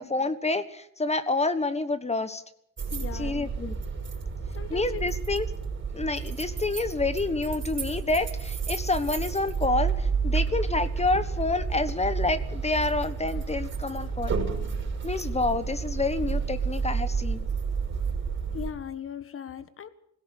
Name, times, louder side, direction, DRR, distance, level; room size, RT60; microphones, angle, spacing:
voice 1, 0.0-2.4 3.1-3.8 4.7-5.4 5.9-14.4 15.0-17.5, left 3 dB, 20° left, 13 dB, 1.4 m, -28 dB
sound 1, 2.8-18.7, right 5 dB, 40° right, 5.7 m, -30 dB
voice 2, 2.9-3.5 4.5-5.0 18.5-19.9, left 8 dB, 45° left, 13 dB, 1.6 m, -38 dB
20.5 x 17.0 x 8.3 m, 0.75 s
cardioid pair, 90°, 30 cm